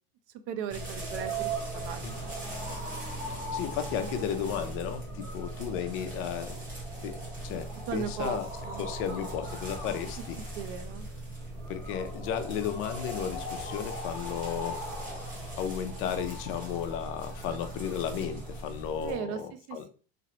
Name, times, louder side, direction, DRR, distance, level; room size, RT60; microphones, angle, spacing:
voice 1, 0.5-2.4 7.9-8.9 9.2-9.3 10.6-11.1 19.0-19.4 19.7-19.9, right 8 dB, 50° right, 10 dB, 0.4 m, -37 dB
sound 1, 0.7-19.2, right 1 dB, 30° right, 1.1 m, -38 dB
sound 2, 1.4-10.0 10.9-11.3, left 1 dB, 60° left, 1.1 m, -53 dB
voice 2, 3.3-6.6 7.0-7.1 7.4-8.5 8.8-10.4 11.7-14.8 15.6-19.8, left 9 dB, 45° left, 8 dB, 0.5 m, -34 dB
3.0 x 2.9 x 2.8 m, 0.38 s
supercardioid pair, 145°, 30 cm